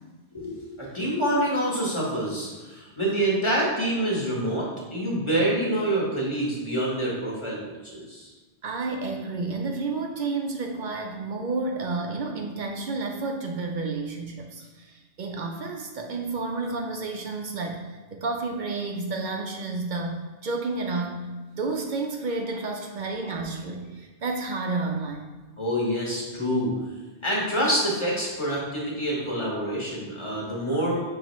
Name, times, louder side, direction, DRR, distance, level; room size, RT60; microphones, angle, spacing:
voice 1, 0.3-7.6 7.9-8.3 25.6-26.7 27.2-31.0, right 1 dB, 30° left, -5 dB, 1.0 m, -26 dB
voice 2, 8.6-20.2 20.4-25.3, right 3 dB, 60° right, 2 dB, 0.5 m, -31 dB
5.7 x 3.0 x 3.0 m, 1.2 s
omnidirectional pair, 1.1 m